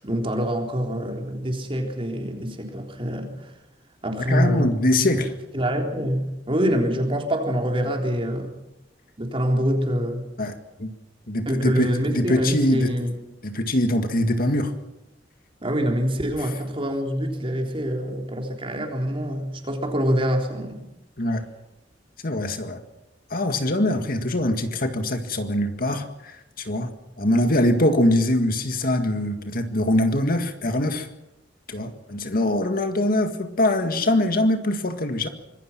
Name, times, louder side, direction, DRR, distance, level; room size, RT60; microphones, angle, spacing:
voice 1, 0.0-3.5 4.0-4.7 5.0-5.2 5.5-8.5 9.2-10.3 11.5-13.1 15.6-20.9, equal, 30° right, 2 dB, 3.9 m, -25 dB
voice 2, 4.3-5.3 10.4-10.9 11.3-12.9 13.4-14.7 21.2-21.4 22.2-22.8 23.3-31.1 31.7-35.3, left 1 dB, 55° left, 7 dB, 1.9 m, -23 dB
25.0 x 21.0 x 6.0 m, 0.90 s
head